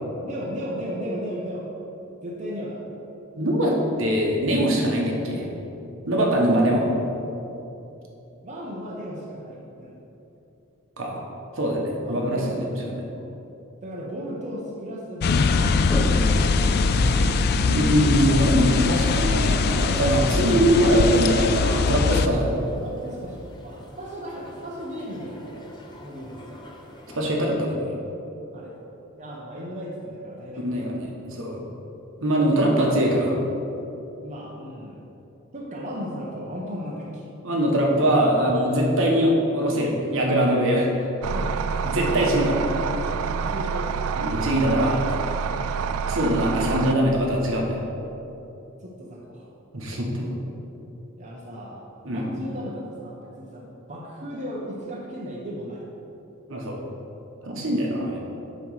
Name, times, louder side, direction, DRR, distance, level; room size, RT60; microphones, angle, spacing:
voice 1, 0.2-1.7 2.2-2.8 6.2-6.8 8.4-10.0 12.0-12.9 13.8-16.8 22.7-25.7 26.0-26.6 28.5-28.7 29.2-31.0 34.2-35.0 35.5-37.3 41.3-41.6 43.0-44.1 48.5-49.5 51.2-55.8, equal, 35° right, -4 dB, 0.8 m, -36 dB
voice 2, 3.4-5.5 6.1-6.9 11.0-11.2 11.6-12.7 12.9-13.0 17.7-22.5 27.1-27.9 30.6-31.6 32.2-33.4 37.4-41.1 41.8-42.6 44.2-45.0 46.1-47.8 49.7-50.3 52.0-52.3 56.5-56.8 57.4-58.2, equal, 65° right, -1 dB, 1.2 m, -22 dB
sound 1, 15.2-22.3, left 4 dB, 50° left, 0.3 m, -22 dB
Toilet flush, 15.8-27.3, left 1 dB, 20° left, 0.7 m, -39 dB
sound 2, 41.2-46.9, right 6 dB, 85° right, 0.3 m, -27 dB
9.1 x 3.1 x 6.3 m, 3.0 s
head